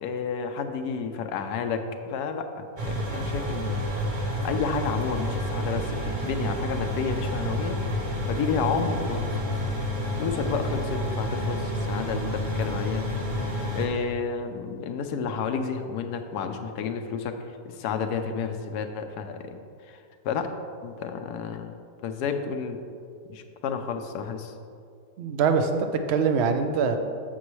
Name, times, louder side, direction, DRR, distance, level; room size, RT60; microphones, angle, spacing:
voice 1, 0.0-3.8 4.4-7.8 8.3-9.4 10.2-13.1 13.4-19.6 19.8-20.5 20.8-22.8 23.3-24.5, left 6 dB, 80° left, 7 dB, 1.2 m, -31 dB
sound 1, 2.8-13.9, equal, 35° right, 1.0 m, -29 dB
voice 2, 25.2-27.0, right 5 dB, 65° right, 6 dB, 0.6 m, -23 dB
8.4 x 7.1 x 3.2 m, 2.4 s
omnidirectional pair, 1.7 m